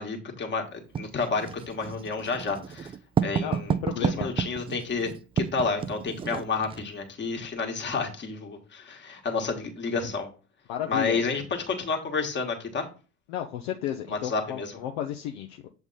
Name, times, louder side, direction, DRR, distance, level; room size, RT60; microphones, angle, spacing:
voice 1, 0.0-2.9 3.2-5.1 5.4-10.3 10.9-12.9 14.1-14.8, left 4 dB, 30° left, 3 dB, 1.5 m, -30 dB
Writing, 0.9-6.9, right 7 dB, 15° right, 0.3 m, -31 dB
voice 2, 3.4-4.3 10.7-11.3 13.3-15.7, left 10 dB, 60° left, 3 dB, 0.7 m, -33 dB
7.2 x 3.4 x 4.1 m, 0.35 s
figure-of-eight pair, 60°, 36 cm